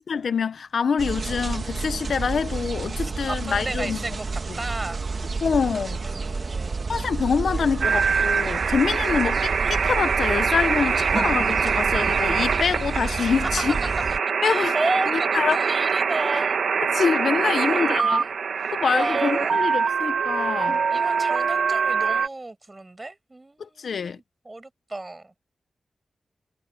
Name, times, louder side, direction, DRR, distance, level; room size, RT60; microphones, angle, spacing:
voice 1, 0.1-4.0 4.5-4.6 5.4-6.1 6.9-13.8 14.4-14.7 15.1-15.6 16.8-18.3 18.7-20.8 23.6-24.2, left 6 dB, 75° left, 1.0 m, -25 dB
sound 1, 1.0-14.2, right 4 dB, 50° right, 2.6 m, -30 dB
voice 2, 3.0-5.0 5.5-6.9 14.4-16.7 17.4-18.3 18.9-19.7 20.9-25.3, right 2 dB, 25° right, 6.2 m, -33 dB
sound 2, 7.8-22.3, right 6 dB, 80° right, 1.6 m, -24 dB
wide cardioid pair, 90°, 0 cm